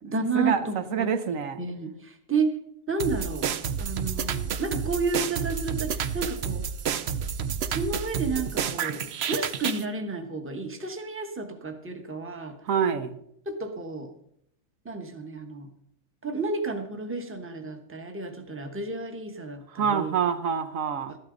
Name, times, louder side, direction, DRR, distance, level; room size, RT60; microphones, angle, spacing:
voice 1, 0.0-2.6 2.9-3.5 3.8-6.6 7.7-12.6 13.4-14.1 14.8-15.7 16.2-20.1 21.1-21.2, right 3 dB, 10° right, 5 dB, 1.0 m, -31 dB
voice 2, 0.9-1.6 12.7-13.1 19.8-21.2, right 7 dB, 80° right, 9 dB, 1.3 m, -26 dB
sound 1, 3.0-9.8, right 7 dB, 60° right, 0.9 m, -30 dB
13.0 x 11.5 x 3.9 m, 0.73 s
omnidirectional pair, 1.4 m